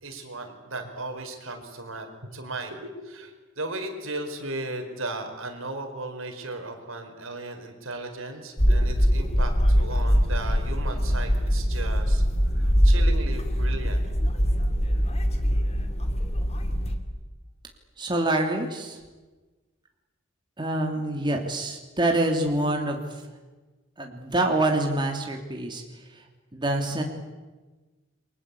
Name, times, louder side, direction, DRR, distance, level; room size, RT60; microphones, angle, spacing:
voice 1, 0.0-12.2 12.5-14.0, right 2 dB, 70° right, 5 dB, 4.8 m, -36 dB
sound 1, 8.6-17.0, equal, 30° left, 2.6 m, -23 dB
voice 2, 18.0-19.0 20.6-23.0 24.0-25.8 26.5-27.0, right 1 dB, 25° right, 2 dB, 3.0 m, -26 dB
30.0 x 23.5 x 8.5 m, 1.2 s
head